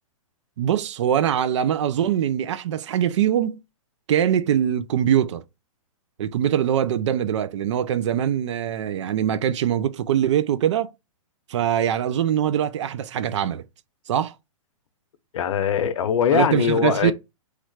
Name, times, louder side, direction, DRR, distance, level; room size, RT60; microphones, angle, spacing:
voice 1, 0.6-3.6 4.1-5.4 6.2-10.9 11.5-13.6 14.1-14.3 16.3-17.1, right 10 dB, 55° right, 0.4 m, -22 dB
voice 2, 15.3-17.1, left 8 dB, 65° left, 0.6 m, -21 dB
3.1 x 2.4 x 3.2 m
hypercardioid pair, 150°, 18 cm